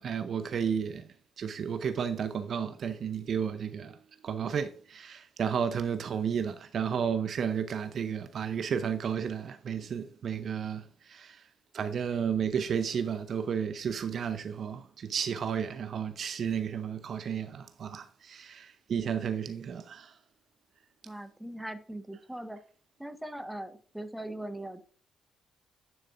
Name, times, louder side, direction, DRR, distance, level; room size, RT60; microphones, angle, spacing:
voice 1, 0.0-4.0 4.2-11.5 11.7-20.2, right 7 dB, 55° right, 0.7 m, -32 dB
voice 2, 21.0-22.6 23.0-24.8, right 1 dB, 5° right, 1.3 m, -40 dB
10.5 x 6.5 x 2.5 m
hypercardioid pair, 45°, 0 cm